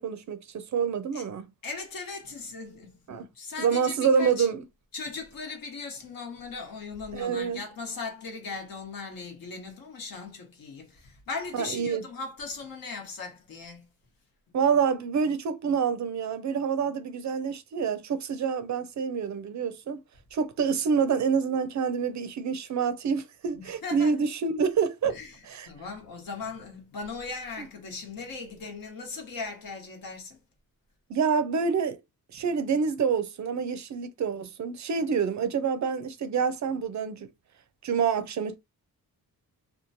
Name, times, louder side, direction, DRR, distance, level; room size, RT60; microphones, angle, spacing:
voice 1, 0.0-1.5 3.1-3.3 3.6-4.6 7.1-7.6 11.5-12.0 14.5-20.0 20.3-25.1 25.4-25.7 27.6-27.7 31.1-32.0 32.3-37.3 37.8-38.5, right 6 dB, 50° right, 0.5 m, -27 dB
voice 2, 1.6-4.5 4.9-13.8 23.5-24.1 25.1-25.4 25.7-30.4, left 4 dB, 65° left, 1.1 m, -38 dB
2.9 x 2.3 x 2.6 m
cardioid pair, 115°, 36 cm